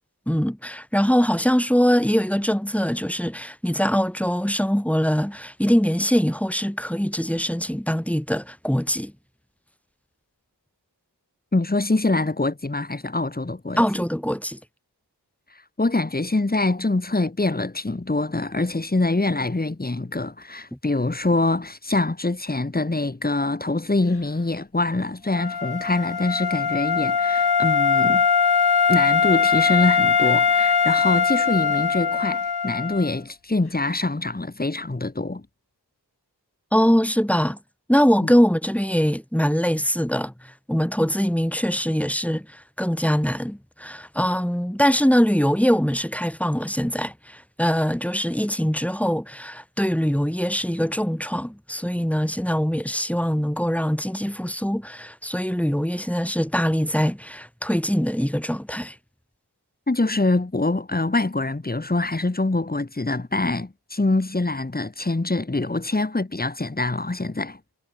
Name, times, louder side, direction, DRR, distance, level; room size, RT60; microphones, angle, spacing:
voice 1, 0.3-9.1 13.8-14.6 36.7-37.6 37.9-58.9, equal, 5° left, 2.1 m, -23 dB
voice 2, 11.5-13.8 15.8-28.3 28.9-35.4 38.2-38.3 59.9-67.7, left 2 dB, 20° left, 1.5 m, -24 dB
Wind instrument woodwind instrument, 25.3-33.1, left 6 dB, 60° left, 1.3 m, -21 dB
wide cardioid pair, 75°, 43 cm